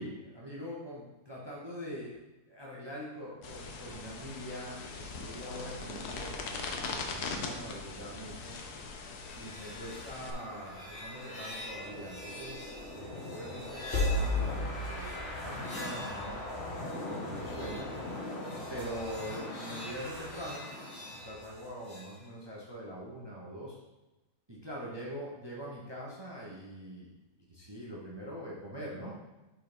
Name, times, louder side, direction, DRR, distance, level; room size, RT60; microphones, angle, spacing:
voice 1, 0.0-2.2 2.5-8.6 9.4-17.9 18.7-20.6 21.1-23.8 24.5-27.1 27.5-29.1, equal, 15° right, -4 dB, 1.2 m, -43 dB
sound 1, 3.4-10.3, left 4 dB, 75° left, 1.4 m, -40 dB
sound 2, 9.2-22.1, left 2 dB, 40° left, 2.0 m, -38 dB
6.7 x 4.5 x 5.2 m, 1.1 s
omnidirectional pair, 1.7 m